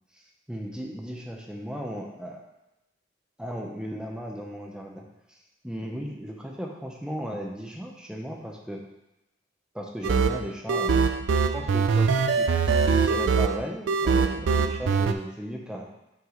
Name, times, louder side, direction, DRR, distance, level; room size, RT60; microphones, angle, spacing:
voice 1, 0.5-2.4 3.4-5.4 5.6-8.8 9.7-15.9, equal, 5° right, 0 dB, 0.7 m, -36 dB
sound 1, 10.0-15.1, right 5 dB, 75° right, 0.4 m, -23 dB
5.8 x 4.7 x 3.8 m, 0.94 s
head